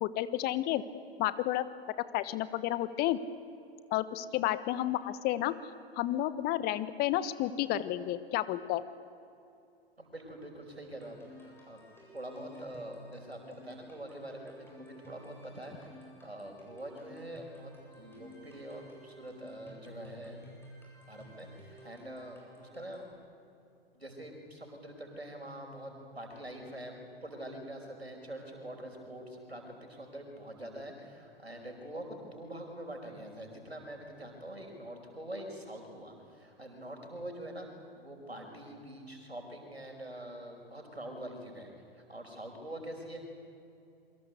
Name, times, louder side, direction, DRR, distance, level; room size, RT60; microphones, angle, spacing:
voice 1, 0.0-0.8 1.2-1.6 2.1-3.2 3.9-5.5 6.0-8.8, left 14 dB, 30° left, 14 dB, 1.3 m, -31 dB
voice 2, 10.0-11.8 12.1-20.4 21.1-23.1 23.9-37.7 38.0-43.2, right 1 dB, 90° right, 3 dB, 5.5 m, -45 dB
sound 1, 10.8-23.1, equal, 5° left, 7.9 m, -54 dB
27.5 x 23.5 x 8.3 m, 2.7 s
figure-of-eight pair, 100°, 30 cm